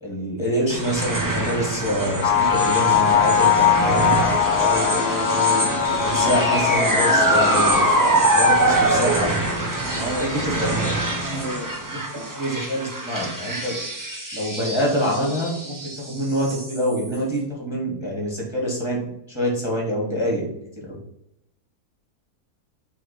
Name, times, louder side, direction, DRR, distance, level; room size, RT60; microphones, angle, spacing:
voice 1, 0.0-4.0 4.6-5.7 6.0-9.5 10.2-10.7 11.1-11.5 11.9-12.0 12.3-13.8 14.3-19.0 19.3-20.5 20.8-21.0, equal, 15° left, -3 dB, 1.9 m, -26 dB
sound 1, 0.7-17.2, right 2 dB, 15° right, 0.8 m, -24 dB
sound 2, 2.2-8.8, left 9 dB, 80° left, 1.2 m, -21 dB
voice 2, 8.5-8.9 9.9-10.9 11.3-11.7 12.1-12.3, right 2 dB, 50° right, 1 dB, 0.9 m, -32 dB
6.4 x 3.7 x 4.2 m, 0.79 s
omnidirectional pair, 1.7 m